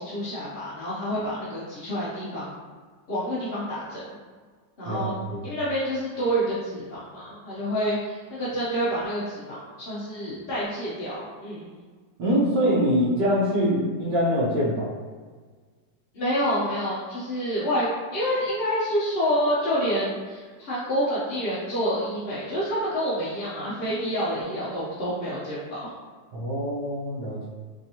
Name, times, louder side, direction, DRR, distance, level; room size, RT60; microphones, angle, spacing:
voice 1, 0.0-2.5 3.1-4.0 4.8-5.1 5.4-11.7 16.1-25.9, equal, 50° left, -9 dB, 0.7 m, -28 dB
voice 2, 4.8-5.5 12.2-14.9 26.3-27.5, equal, 70° right, -9 dB, 1.6 m, -24 dB
3.5 x 3.2 x 2.8 m, 1.5 s
omnidirectional pair, 2.0 m